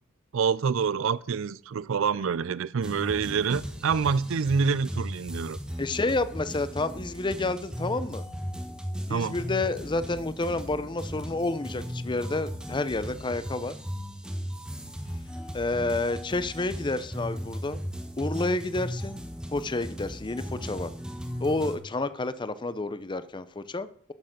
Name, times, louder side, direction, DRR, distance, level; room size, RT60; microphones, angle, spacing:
voice 1, 0.3-5.6 9.1-9.4, right 6 dB, 65° right, 0.4 m, -26 dB
sound 1, 2.8-21.8, equal, 5° right, 1.1 m, -37 dB
voice 2, 5.8-8.2 9.1-13.7 15.5-17.9 18.2-19.2 19.5-20.9 21.4-24.1, left 2 dB, 25° left, 0.6 m, -29 dB
9.7 x 6.7 x 6.5 m
head